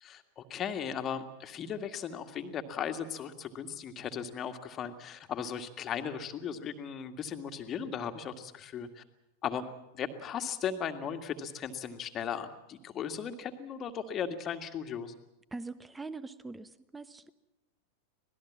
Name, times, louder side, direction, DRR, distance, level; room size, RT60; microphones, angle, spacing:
voice 1, 0.0-9.0 9.4-9.6 9.9-15.1, left 7 dB, 30° left, 8 dB, 1.9 m, -37 dB
voice 2, 15.5-17.3, right 3 dB, 10° right, 16 dB, 1.1 m, -43 dB
26.0 x 19.0 x 7.4 m, 0.91 s
figure-of-eight pair, 90°, 0 cm